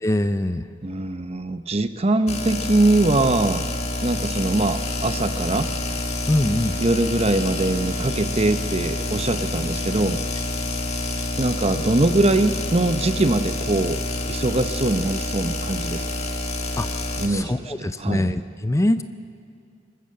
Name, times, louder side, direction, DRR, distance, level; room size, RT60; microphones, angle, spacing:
voice 1, 0.0-0.7 6.3-6.8 16.8-16.9 17.3-19.0, left 1 dB, 15° left, 11 dB, 0.5 m, -23 dB
voice 2, 0.8-3.6 4.0-5.7 6.8-10.2 11.4-14.0 14.3-16.0 17.2-18.3, right 2 dB, 35° right, 11 dB, 0.8 m, -22 dB
sound 1, 2.3-17.3, left 2 dB, 35° left, 1.8 m, -28 dB
25.0 x 13.5 x 7.7 m, 2.4 s
head